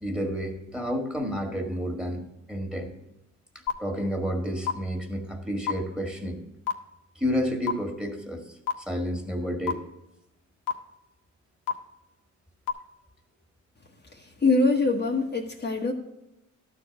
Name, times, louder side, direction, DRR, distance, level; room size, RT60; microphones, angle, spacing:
voice 1, 0.0-2.9 3.8-6.4 7.2-9.8, equal, 5° right, 3 dB, 1.8 m, -30 dB
sound 1, 3.7-3.8 4.7-4.8 5.7-5.8 6.7-6.8 7.7-7.8 8.7-8.8 9.7-9.8 10.7-10.8 11.7-11.8 12.7-12.8, left 8 dB, 80° left, 1.1 m, -25 dB
voice 2, 14.4-15.9, left 3 dB, 35° left, 1 dB, 1.1 m, -23 dB
12.0 x 4.8 x 6.7 m, 0.90 s
cardioid pair, 90°, 30 cm